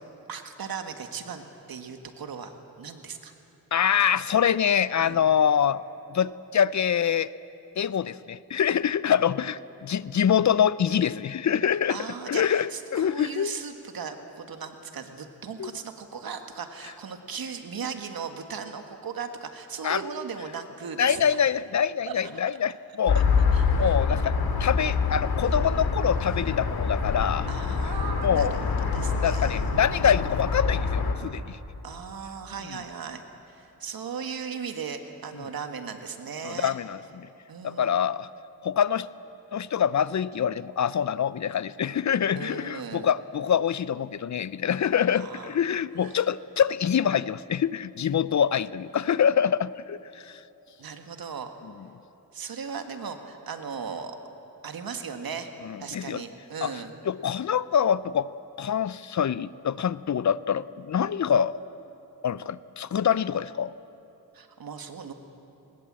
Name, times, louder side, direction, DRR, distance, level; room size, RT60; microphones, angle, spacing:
voice 1, 0.3-3.3 5.0-5.2 11.9-21.4 22.1-22.2 23.1-23.2 23.5-23.9 27.5-30.2 31.8-36.8 37.5-37.9 42.3-43.1 45.1-45.6 46.0-46.2 50.8-51.5 52.3-54.2 54.6-55.5 55.8-56.9 64.3-65.1, right 6 dB, 70° right, 6 dB, 1.8 m, -37 dB
voice 2, 3.7-5.8 6.1-7.3 7.8-12.0 12.3-13.5 15.6-15.7 19.8-20.0 21.0-23.2 23.8-27.5 27.8-27.9 28.2-28.6 29.2-31.6 36.4-37.3 37.6-38.3 38.6-39.1 39.5-50.4 55.6-56.2 56.6-56.7 57.1-58.3 58.6-61.6 62.2-63.7, left 8 dB, 50° left, 18 dB, 0.5 m, -25 dB
sound 1, 23.1-31.1, left 5 dB, 75° left, 2.3 m, -25 dB
21.0 x 20.5 x 7.6 m, 3.0 s
cardioid pair, 70°, 37 cm